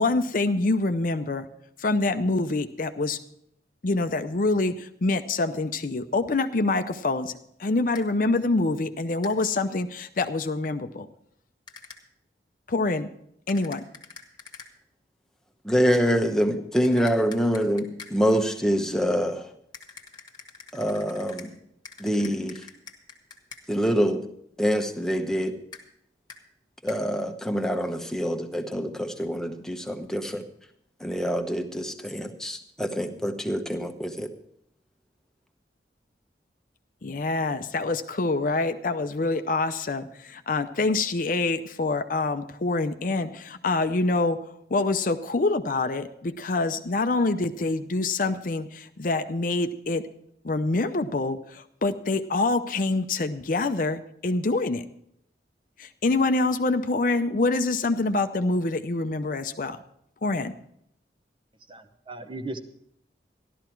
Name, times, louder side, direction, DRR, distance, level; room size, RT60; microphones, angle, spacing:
voice 1, 0.0-1.5 1.8-3.2 3.8-7.3 7.6-11.1 12.7-13.1 13.5-13.8 37.0-44.4 44.7-50.0 50.4-54.9 55.8-59.8 60.2-60.5, left 3 dB, 50° left, 9 dB, 0.6 m, -26 dB
sound 1, 7.9-8.1 9.2-9.4 11.7-12.0 13.5-14.7 16.8-18.2 19.7-21.5 21.8-23.6 25.7-25.8 26.3-26.4 26.9-27.0, left 5 dB, 25° left, 1.4 m, -45 dB
voice 2, 15.6-19.5 20.7-21.5 22.0-22.7 23.7-24.2 24.6-25.5 26.8-30.4 31.0-34.3, equal, 5° left, 5 dB, 0.9 m, -25 dB
voice 3, 61.7-62.6, right 2 dB, 30° right, 7 dB, 0.8 m, -37 dB
13.5 x 12.0 x 4.5 m, 0.72 s
head